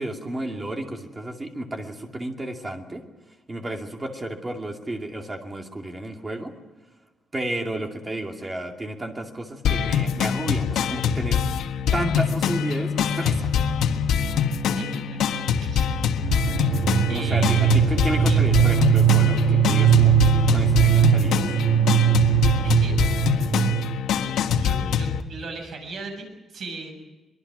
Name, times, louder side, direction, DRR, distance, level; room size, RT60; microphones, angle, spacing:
voice 1, 0.0-3.0 3.5-6.5 7.3-11.5 11.9-13.5 17.1-20.2 20.5-21.4, right 1 dB, 15° right, 3 dB, 2.5 m, -32 dB
sound 1, 9.6-25.2, left 7 dB, 80° left, 1.5 m, -24 dB
voice 2, 14.7-15.2 15.6-15.9 17.1-17.8 18.3-18.4 22.6-22.9 24.4-26.9, right 3 dB, 50° right, 4 dB, 6.7 m, -37 dB
sound 2, 16.2-24.1, right 10 dB, 80° right, 1.4 m, -20 dB
24.5 x 22.0 x 6.2 m, 1.2 s
cardioid pair, 175°, 0 cm